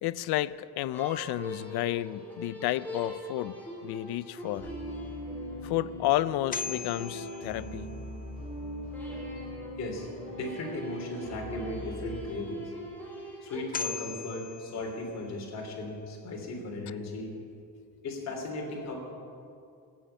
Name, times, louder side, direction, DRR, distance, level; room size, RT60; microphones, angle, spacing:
voice 1, 0.0-4.7 5.6-7.9, left 15 dB, 85° left, 0.6 m, -31 dB
sound 1, 0.9-8.3 8.9-13.6, equal, 5° left, 2.9 m, -43 dB
sound 2, 4.6-12.2, equal, 15° right, 4.8 m, -41 dB
sound 3, 6.3-8.4 13.3-13.4 13.7-15.6, left 6 dB, 25° left, 0.6 m, -39 dB
voice 2, 10.3-12.7 13.4-17.3 18.0-18.9, left 2 dB, 45° left, 3.3 m, -37 dB
16.0 x 7.9 x 9.0 m
cardioid pair, 170°, 37 cm